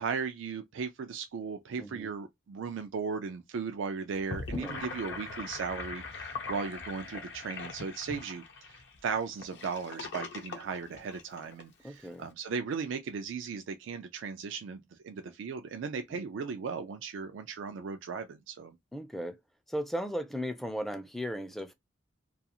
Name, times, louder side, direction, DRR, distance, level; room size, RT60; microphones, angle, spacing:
voice 1, 0.0-18.8, right 5 dB, 90° right, 0.4 m, -37 dB
voice 2, 1.8-2.1 4.5-4.8 11.8-12.3 16.1-16.2 18.9-19.4 19.7-21.7, equal, ahead, 0.3 m, -36 dB
Gurgling / Sink (filling or washing), 4.1-11.6, left 4 dB, 65° left, 0.6 m, -41 dB
2.4 x 2.3 x 2.8 m
head